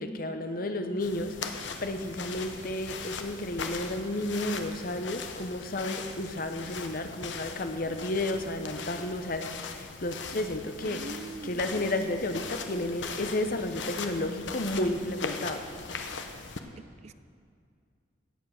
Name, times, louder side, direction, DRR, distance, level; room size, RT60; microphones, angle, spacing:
voice 1, 0.0-15.6, left 1 dB, 50° left, 7 dB, 0.8 m, -32 dB
sound 1, 1.0-16.6, left 5 dB, 75° left, 0.9 m, -40 dB
voice 2, 10.8-11.6 16.8-17.1, right 3 dB, 35° right, 14 dB, 0.3 m, -43 dB
17.0 x 7.4 x 6.4 m, 2.3 s
head